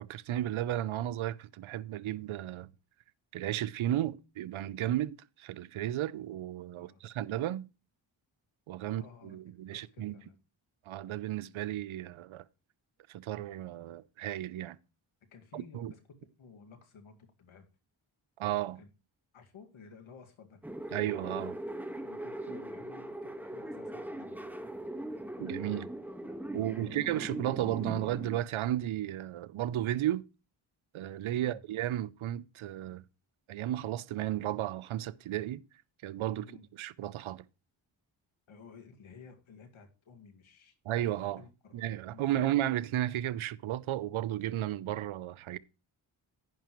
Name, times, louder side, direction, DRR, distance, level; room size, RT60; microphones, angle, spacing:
voice 1, 0.0-2.7 3.3-7.7 8.7-10.1 10.9-12.4 13.1-14.8 15.5-15.9 18.4-18.8 20.9-21.6 25.4-25.9 26.5-30.3 30.9-33.0 33.5-35.6 36.0-37.4 40.8-41.4 41.7-45.6, right 13 dB, 85° right, 0.7 m, -34 dB
voice 2, 8.8-10.4 15.3-17.7 18.8-18.9 19.3-20.6 22.0-24.5 26.5-27.4 31.3-31.6 36.3-36.6 38.5-40.7 41.2-42.6, left 5 dB, 85° left, 2.1 m, -54 dB
sound 1, 20.6-28.4, right 1 dB, 5° right, 1.4 m, -40 dB
11.0 x 10.5 x 3.1 m
cardioid pair, 65°, 47 cm